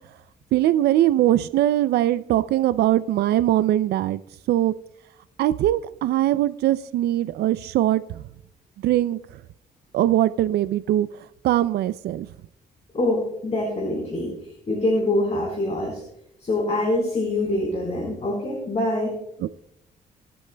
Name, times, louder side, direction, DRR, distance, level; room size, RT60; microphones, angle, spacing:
voice 1, 0.5-4.2 4.5-4.7 5.4-8.2 8.8-9.4 9.9-12.3 19.4-19.6, right 13 dB, 80° right, 13 dB, 0.4 m, -21 dB
voice 2, 12.9-14.3 14.7-16.0 16.4-19.2, left 1 dB, 40° left, -1 dB, 4.1 m, -24 dB
24.0 x 8.3 x 2.2 m, 0.79 s
cardioid pair, 80°, 17 cm